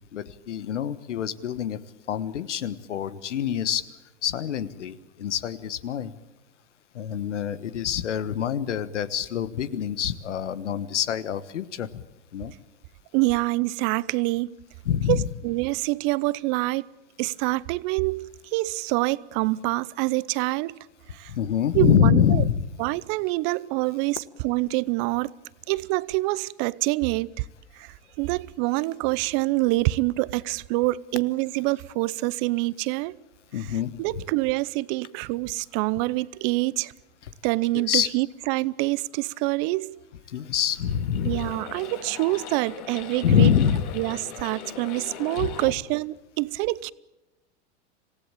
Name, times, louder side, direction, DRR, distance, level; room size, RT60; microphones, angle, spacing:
voice 1, 0.1-1.8 2.1-3.8 4.2-6.1 6.9-12.0 12.3-12.5 14.8-15.2 21.3-22.6 33.5-33.9 37.2-37.3 37.7-38.1 40.3-41.5 43.2-43.8 45.4-45.5, left 9 dB, 90° left, 1.4 m, -25 dB
voice 2, 13.1-14.5 15.1-16.9 17.2-21.3 21.7-22.4 22.8-25.3 25.7-27.4 27.7-33.2 34.0-36.9 37.4-39.9 41.2-43.5 44.0-46.9, right 21 dB, 50° right, 0.8 m, -26 dB
sound 1, 40.6-45.7, left 9 dB, 50° left, 2.9 m, -40 dB
26.5 x 16.0 x 8.9 m
hypercardioid pair, 110°, 35 cm